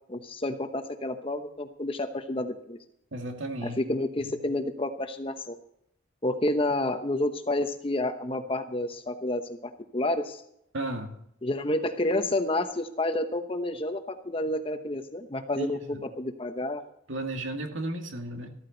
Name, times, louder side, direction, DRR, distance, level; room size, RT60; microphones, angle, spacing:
voice 1, 0.1-2.8 3.6-5.5 6.2-10.4 11.4-16.8, left 1 dB, 30° left, 8 dB, 1.0 m, -30 dB
voice 2, 3.1-3.8 10.7-11.2 15.6-16.0 17.1-18.6, right 2 dB, 80° right, 4 dB, 2.1 m, -34 dB
14.0 x 13.5 x 4.0 m, 0.74 s
head